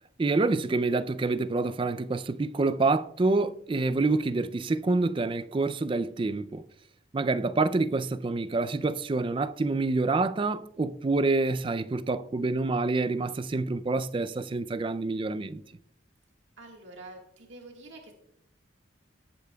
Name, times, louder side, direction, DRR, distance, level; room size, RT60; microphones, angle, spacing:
voice 1, 0.2-6.6 7.1-15.6, right 3 dB, 25° right, 0.3 m, -27 dB
voice 2, 16.6-18.1, right 2 dB, 70° right, 1.6 m, -47 dB
17.5 x 8.3 x 2.3 m
head